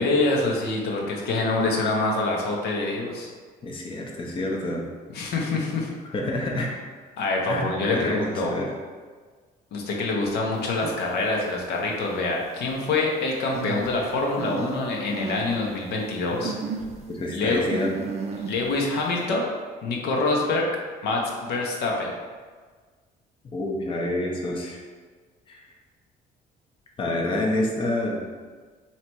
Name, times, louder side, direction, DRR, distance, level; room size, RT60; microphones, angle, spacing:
voice 1, 0.0-3.3 5.1-5.9 7.2-8.5 9.7-16.6 17.3-17.8 18.4-19.5 19.8-20.7 21.0-22.1, left 3 dB, 75° left, -1 dB, 0.8 m, -25 dB
voice 2, 3.6-4.8 6.1-6.7 7.4-8.7 16.3-16.4 17.1-17.9 23.5-24.8 25.5-25.6 27.0-28.2, left 1 dB, 30° left, -1 dB, 0.6 m, -28 dB
sound 1, 10.7-11.0 11.6-11.7 13.5-14.8 15.1-15.5 15.9-16.0 16.4-17.0 17.7-18.7, right 5 dB, 40° right, 0.4 m, -33 dB
3.2 x 2.9 x 4.4 m, 1.5 s
cardioid pair, 110°, 17 cm